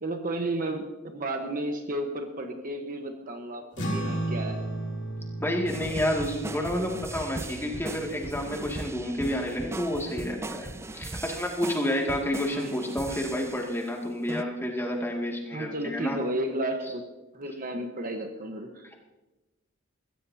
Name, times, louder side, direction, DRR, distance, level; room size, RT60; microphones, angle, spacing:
voice 1, 0.0-4.6 12.5-12.8 15.5-17.0 17.3-18.9, right 1 dB, 45° right, 4 dB, 1.2 m, -33 dB
sound 1, 3.7-10.4, right 1 dB, 60° left, 3.0 m, -36 dB
voice 2, 5.4-16.2, left 1 dB, 10° left, 0 dB, 2.3 m, -30 dB
sound 2, 5.7-13.9 14.3-14.4, right 2 dB, 15° right, 0.4 m, -39 dB
22.0 x 15.5 x 2.8 m, 1.1 s
head